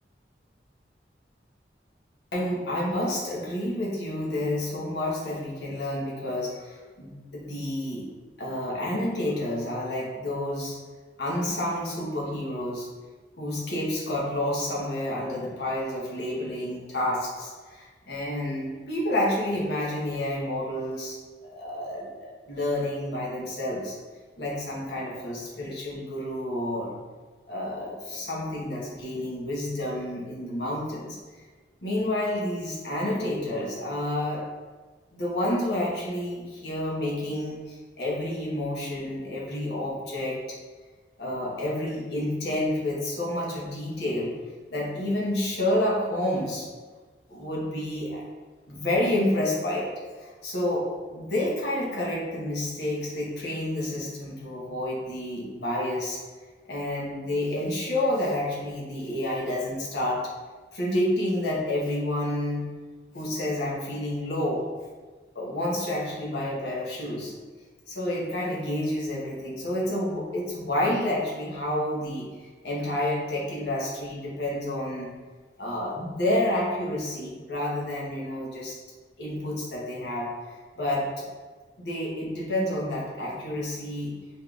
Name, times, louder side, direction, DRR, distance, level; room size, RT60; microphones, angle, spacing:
voice 1, 2.3-8.1 8.4-10.8 11.2-12.9 13.4-23.9 24.4-26.9 27.5-31.2 31.8-34.4 35.1-40.4 41.2-44.3 44.7-46.7 47.3-48.2 48.7-49.9 50.2-56.2 56.6-60.2 60.7-62.7 63.1-64.6 65.3-67.3 67.9-72.3 72.6-75.1 75.6-78.8 79.2-81.3 81.8-84.1, left 1 dB, 70° left, -4 dB, 1.2 m, -29 dB
4.2 x 3.7 x 2.5 m, 1.4 s
head